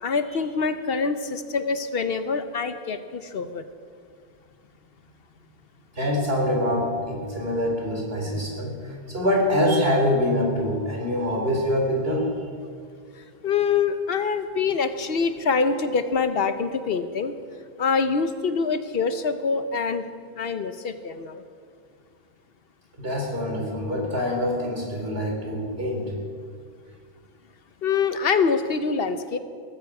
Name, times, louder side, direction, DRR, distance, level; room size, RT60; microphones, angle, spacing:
voice 1, 0.0-3.6 13.2-17.4 17.8-20.1 20.4-21.4 27.8-29.4, left 5 dB, 65° left, 10 dB, 1.0 m, -25 dB
voice 2, 6.0-12.3 23.0-26.1, left 1 dB, 65° right, 0 dB, 3.7 m, -25 dB
18.5 x 15.0 x 4.8 m, 2.1 s
omnidirectional pair, 1.1 m